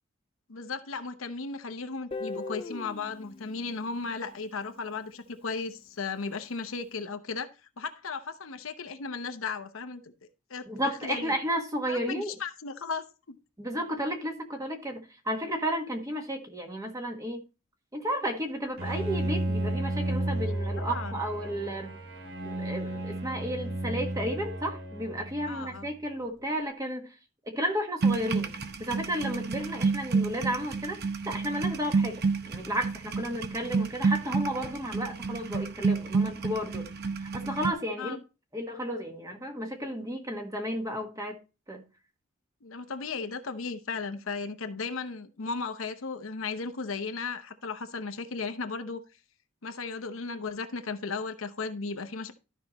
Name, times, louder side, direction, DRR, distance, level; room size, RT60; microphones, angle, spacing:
voice 1, 0.5-7.5 7.8-10.1 10.5-11.3 11.9-13.4 20.3-20.4 20.8-21.2 25.5-25.9 38.0-38.2 42.6-49.0 49.6-52.3, left 4 dB, 75° left, 0.8 m, -36 dB
Guitar, 2.1-5.1, left 3 dB, 25° left, 0.4 m, -40 dB
voice 2, 10.7-12.3 13.6-17.4 17.9-21.9 22.4-27.1 27.4-31.0 31.2-36.9 37.2-38.2 38.5-41.4 41.7-41.8, equal, 15° right, 1.4 m, -33 dB
Bowed string instrument, 18.8-25.9, right 1 dB, 75° right, 2.7 m, -33 dB
sound 1, 28.0-37.7, right 4 dB, 50° right, 0.8 m, -29 dB
12.5 x 5.5 x 3.0 m
head